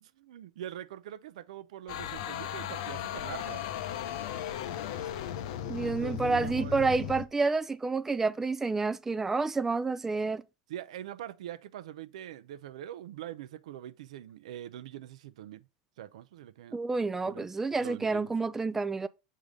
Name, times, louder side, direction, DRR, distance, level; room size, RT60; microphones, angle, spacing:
voice 1, 0.0-3.6 5.8-6.8 10.7-15.6 16.0-16.8 17.3-17.5 17.8-18.3, right 11 dB, 85° right, 0.6 m, -43 dB
sound 1, 1.9-7.2, left 10 dB, 75° left, 0.7 m, -36 dB
voice 2, 5.6-10.4 16.7-19.1, right 3 dB, 10° right, 0.3 m, -29 dB
6.7 x 3.7 x 5.0 m
supercardioid pair, 135°, 3 cm